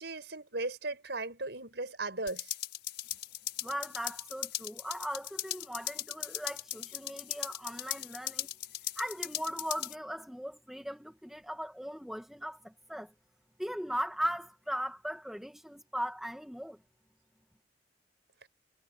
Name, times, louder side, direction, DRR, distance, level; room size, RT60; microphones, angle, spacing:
voice 1, 0.0-2.5 18.4-18.5, right 2 dB, 70° right, 6.0 m, -37 dB
sound 1, 2.3-9.9, left 13 dB, 70° left, 6.4 m, -39 dB
voice 2, 3.6-8.5 9.0-13.1 13.6-16.8, equal, ahead, 1.8 m, -38 dB
head